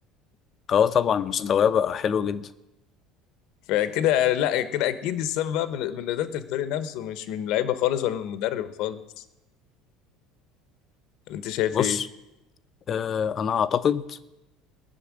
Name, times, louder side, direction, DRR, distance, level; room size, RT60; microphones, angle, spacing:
voice 1, 0.7-2.5 11.7-12.1 12.9-14.2, left 8 dB, 30° left, 0.7 m, -23 dB
voice 2, 3.7-9.0 11.3-12.0, left 12 dB, 65° left, 1.1 m, -26 dB
19.0 x 7.0 x 9.8 m
cardioid pair, 150°, 0 cm